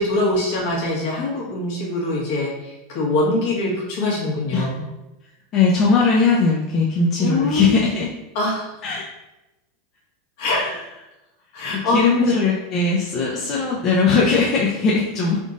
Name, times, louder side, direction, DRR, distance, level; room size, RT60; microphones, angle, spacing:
voice 1, 0.0-4.8 7.2-7.9 8.3-8.8 10.4-10.6 11.5-12.3, left 2 dB, 65° left, -3 dB, 1.4 m, -23 dB
voice 2, 5.5-8.1 8.8-9.1 10.5-10.7 11.9-15.4, left 4 dB, 45° left, -4 dB, 0.6 m, -19 dB
3.9 x 3.6 x 2.5 m, 0.97 s
hypercardioid pair, 105°, 0 cm